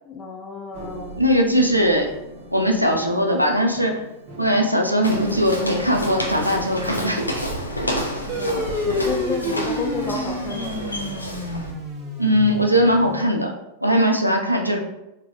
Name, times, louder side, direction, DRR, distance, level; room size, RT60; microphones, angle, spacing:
voice 1, 0.1-1.2 8.2-10.7, left 4 dB, 30° left, 2 dB, 0.4 m, -31 dB
sound 1, 0.7-13.3, equal, 50° right, 1.1 m, -41 dB
voice 2, 1.2-2.1 2.5-3.9 4.4-7.2 12.2-13.5 13.8-14.8, equal, 90° right, 2 dB, 0.4 m, -19 dB
Walk footsteps, 5.0-11.7, equal, 85° left, 0.5 m, -29 dB
sound 2, 8.3-13.2, left 1 dB, 25° right, 0.7 m, -29 dB
4.1 x 2.5 x 2.3 m, 0.91 s
figure-of-eight pair, 90°, 0 cm